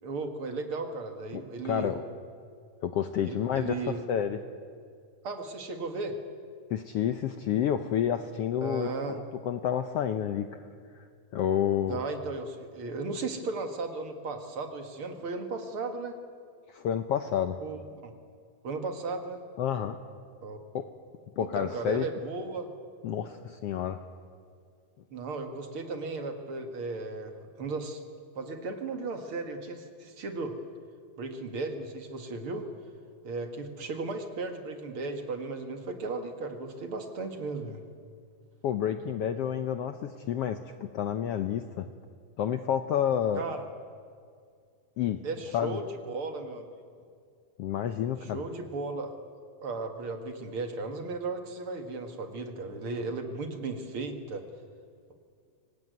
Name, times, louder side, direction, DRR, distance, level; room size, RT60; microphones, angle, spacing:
voice 1, 0.0-1.9 3.2-4.0 5.2-6.2 8.6-9.2 11.9-16.2 17.6-18.1 18.6-19.4 20.4-20.6 21.5-22.7 25.1-28.0 28.4-30.6 31.2-32.7 33.2-37.8 43.4-43.7 45.2-46.6 48.2-49.2 49.6-54.4, right 3 dB, 45° right, 6 dB, 2.3 m, -35 dB
voice 2, 1.3-2.0 2.8-4.4 6.7-9.2 9.4-10.5 10.9-11.0 11.3-12.0 16.7-17.6 19.6-20.0 20.7-20.9 21.4-22.0 23.0-24.0 38.6-41.9 42.4-43.4 45.0-45.2 45.5-45.8 47.6-48.4, left 9 dB, 80° left, 8 dB, 1.4 m, -29 dB
25.0 x 19.0 x 9.3 m, 2.2 s
omnidirectional pair, 3.7 m